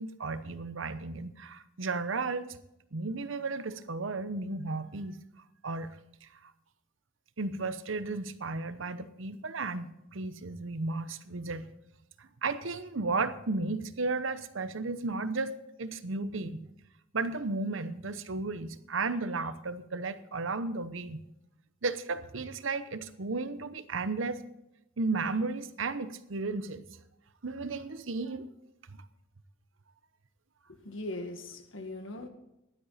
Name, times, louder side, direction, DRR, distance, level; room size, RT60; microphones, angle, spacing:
voice 1, 0.0-2.6 2.9-5.2 5.6-6.5 7.4-11.7 12.2-16.7 17.1-21.2 21.8-24.4 25.0-26.8 27.4-28.5 28.9-29.0, right 3 dB, 75° right, 12 dB, 0.9 m, -34 dB
voice 2, 30.7-32.3, left 2 dB, 75° left, 6 dB, 1.8 m, -40 dB
15.0 x 11.5 x 4.2 m, 0.88 s
head